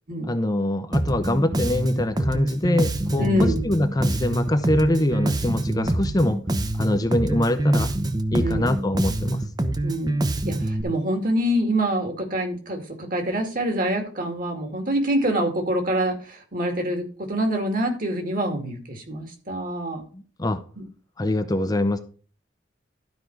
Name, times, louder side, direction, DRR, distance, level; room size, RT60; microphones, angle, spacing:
voice 1, 0.2-6.4 6.7-7.9 8.3-9.4 20.1-20.6 21.2-22.0, left 1 dB, 20° left, 9 dB, 0.6 m, -24 dB
Bass guitar, 0.9-10.8, right 1 dB, 20° right, 0.8 m, -25 dB
voice 2, 3.2-3.6 8.4-8.6 9.8-10.1 10.5-20.0 20.8-20.9, right 1 dB, 45° right, 4 dB, 2.3 m, -25 dB
12.5 x 5.2 x 4.6 m, 0.40 s
head